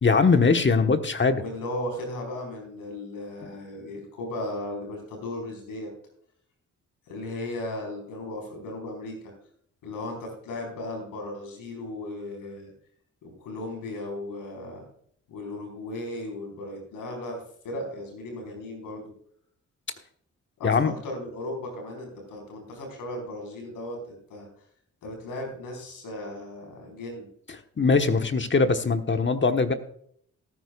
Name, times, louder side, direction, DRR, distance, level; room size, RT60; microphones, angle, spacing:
voice 1, 0.0-1.4 20.6-20.9 27.8-29.7, left 4 dB, 35° left, 8 dB, 1.2 m, -21 dB
voice 2, 1.3-5.9 7.1-9.3 9.8-12.7 13.2-14.9 15.3-19.0 20.6-24.5 25.0-27.3, left 1 dB, 85° left, 2 dB, 4.5 m, -36 dB
18.0 x 9.6 x 2.4 m, 0.65 s
supercardioid pair, 50°, 32 cm